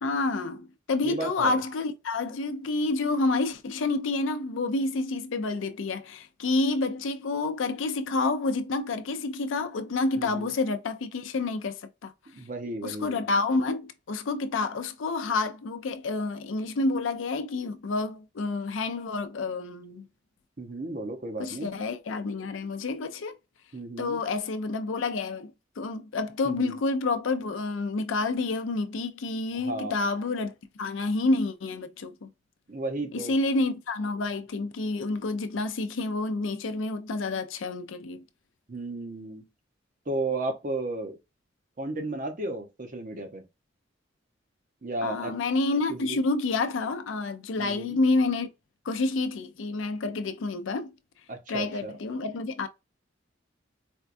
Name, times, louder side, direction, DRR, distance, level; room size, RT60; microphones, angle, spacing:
voice 1, 0.0-12.1 12.8-20.1 21.4-23.4 24.0-25.5 25.8-32.3 33.1-38.2 45.0-48.5 48.9-50.9 51.5-52.7, left 3 dB, 85° left, 0.5 m, -29 dB
voice 2, 1.0-1.6 10.2-10.5 12.3-13.2 20.6-21.7 23.7-24.2 26.4-26.8 29.5-30.1 32.7-33.3 38.7-39.4 40.1-41.2 41.8-43.4 44.8-45.3 45.9-46.2 47.6-48.0 51.3-52.0, right 2 dB, 45° right, 0.8 m, -34 dB
4.4 x 2.2 x 2.5 m
head